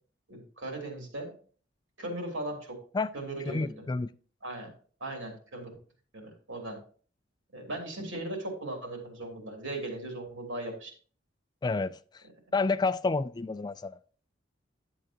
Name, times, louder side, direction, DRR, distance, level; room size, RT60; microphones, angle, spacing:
voice 1, 0.3-1.3 2.0-2.8 3.1-3.8 4.4-4.7 5.0-5.8 6.1-6.8 7.5-10.9, right 1 dB, 85° right, 3.2 m, -38 dB
voice 2, 3.4-4.1 11.6-12.2 12.5-14.0, left 3 dB, 20° left, 0.3 m, -29 dB
11.0 x 7.7 x 2.9 m
head